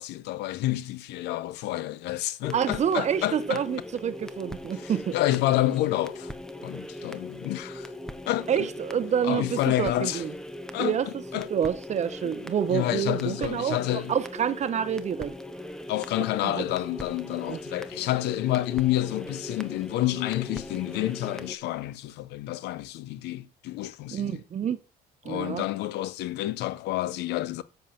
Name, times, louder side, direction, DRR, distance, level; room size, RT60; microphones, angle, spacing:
voice 1, 0.0-3.6 4.8-6.3 6.6-7.9 8.3-8.7 9.2-10.2 10.7-11.0 11.3-11.5 12.7-14.1 15.9-24.4 25.2-27.6, left 15 dB, 85° left, 0.7 m, -29 dB
sound 1, 2.4-21.6, left 1 dB, 5° left, 0.9 m, -40 dB
voice 2, 2.5-5.2 8.5-10.3 10.8-11.2 11.5-15.4 16.4-16.6 17.5-17.6 24.1-24.8 25.2-25.6, right 8 dB, 45° right, 0.8 m, -28 dB
7.6 x 7.2 x 5.8 m
cardioid pair, 110°, 17 cm